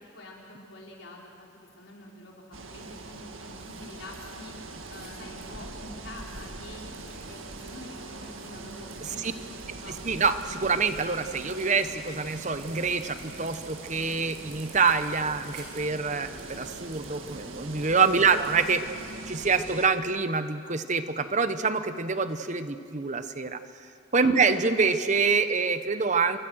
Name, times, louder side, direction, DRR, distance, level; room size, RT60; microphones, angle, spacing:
voice 1, 0.1-1.3 1.7-10.0 24.2-24.3, left 1 dB, 75° left, -2 dB, 4.9 m, -46 dB
sound 1, 2.5-19.9, right 3 dB, 90° right, 1.9 m, -42 dB
sound 2, 2.7-19.3, right 3 dB, 60° right, 6.2 m, -52 dB
voice 2, 9.0-9.3 10.0-18.8 19.3-23.6 24.1-26.4, right 4 dB, 35° right, 10 dB, 1.0 m, -26 dB
29.0 x 24.0 x 6.4 m, 2.4 s
head